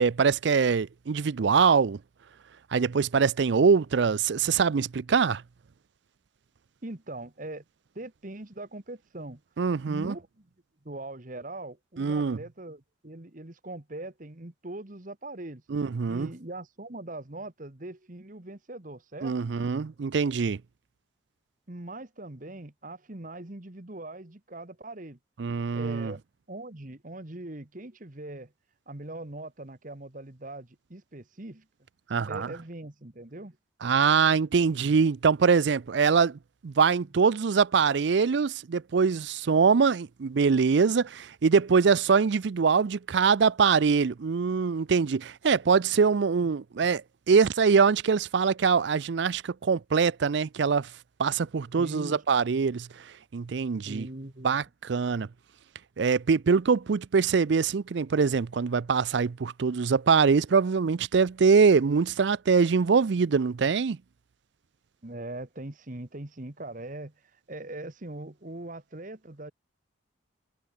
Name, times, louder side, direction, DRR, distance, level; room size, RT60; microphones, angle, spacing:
voice 1, 0.0-2.0 2.7-5.4 9.6-10.1 12.0-12.4 15.7-16.3 19.2-20.6 25.4-26.1 32.1-32.5 33.8-50.9 51.2-52.9 53.3-54.1 54.4-55.3 56.0-64.0, right 5 dB, 65° right, 0.4 m, -23 dB
voice 2, 6.8-7.6 7.9-9.4 9.9-10.5 10.8-15.6 16.1-19.3 21.7-25.2 25.7-26.2 26.5-28.5 28.9-31.6 32.3-33.6 51.8-52.2 53.8-54.5 65.0-67.1 67.5-69.5, right 2 dB, 40° right, 1.5 m, -41 dB
head